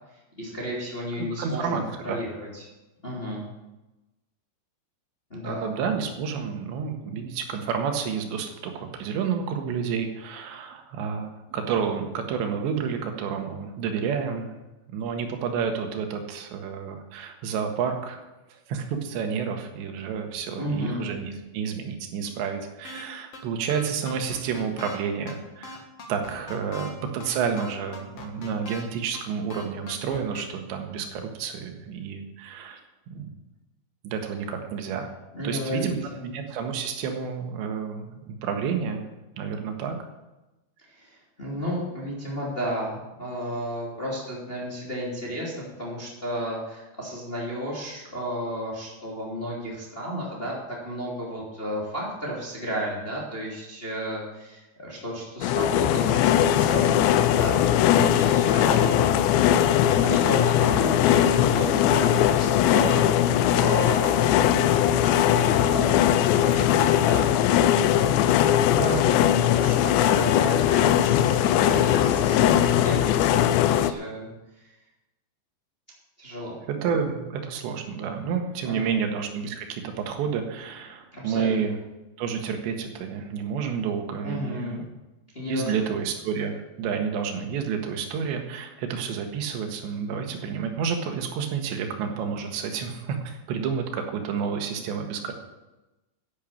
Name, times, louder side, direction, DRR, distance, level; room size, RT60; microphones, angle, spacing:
voice 1, 0.4-2.7 3.0-3.4 5.3-5.7 20.6-21.0 35.3-35.9 40.9-59.0 60.0-64.2 64.9-67.3 69.3-74.3 74.6-74.7 76.2-76.5 78.6-78.9 81.1-81.6 84.2-84.8 85.3-85.7, equal, 15° left, -5 dB, 2.4 m, -33 dB
voice 2, 1.2-1.8 2.1-2.2 5.4-14.5 14.9-18.2 18.5-25.8 26.1-32.8 33.1-33.3 34.0-35.1 35.4-39.1 39.4-40.0 68.8-69.1 76.7-81.8 82.2-84.9 85.5-95.3, right 6 dB, 70° right, 4 dB, 3.5 m, -30 dB
sound 1, 22.8-23.0 23.3-23.4 23.7-25.0 25.3-25.4 25.6-26.9 27.2-27.3 27.6-28.8 29.1-29.2 29.5-30.4, left 3 dB, 70° left, 1.4 m, -40 dB
sound 2, 55.4-73.9, left 11 dB, 85° left, 2.6 m, -20 dB
10.5 x 10.5 x 7.3 m, 1.0 s
omnidirectional pair, 5.6 m